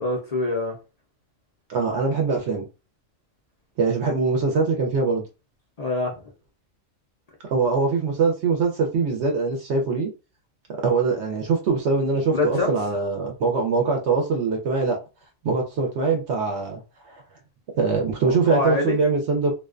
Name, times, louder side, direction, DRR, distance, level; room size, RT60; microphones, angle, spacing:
voice 1, 0.0-0.7 5.8-6.2 12.3-12.8 18.2-19.0, left 3 dB, 60° left, 0.4 m, -25 dB
voice 2, 1.7-2.7 3.8-5.2 7.5-10.1 10.8-15.0 15.4-16.8 17.1-17.2 17.8-19.6, right 4 dB, 65° right, 0.8 m, -23 dB
2.5 x 2.1 x 2.4 m
omnidirectional pair, 1.4 m